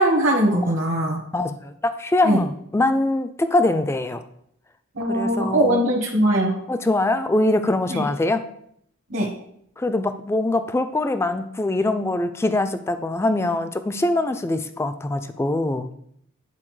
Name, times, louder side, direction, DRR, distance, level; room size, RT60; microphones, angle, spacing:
voice 1, 0.0-1.2 2.2-2.4 4.9-6.6 7.9-8.0 9.1-9.3, right 1 dB, 65° right, -3 dB, 1.1 m, -20 dB
voice 2, 1.3-4.2 5.1-5.8 6.7-8.5 9.8-15.9, left 2 dB, 15° left, 10 dB, 0.3 m, -23 dB
9.9 x 3.9 x 3.2 m, 0.70 s
head